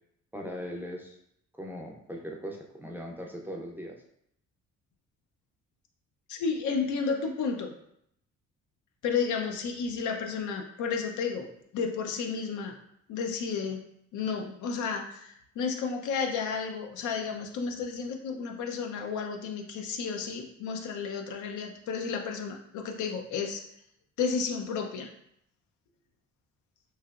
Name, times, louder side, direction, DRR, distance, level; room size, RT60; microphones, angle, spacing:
voice 1, 0.3-1.2 1.6-4.0, equal, 5° right, -1 dB, 0.4 m, -39 dB
voice 2, 6.3-7.7 9.0-11.5 11.7-12.8 13.1-13.8 14.1-23.6 24.2-25.1, left 5 dB, 75° left, 4 dB, 0.5 m, -32 dB
3.2 x 2.8 x 2.4 m, 0.73 s
cardioid pair, 90°, 30 cm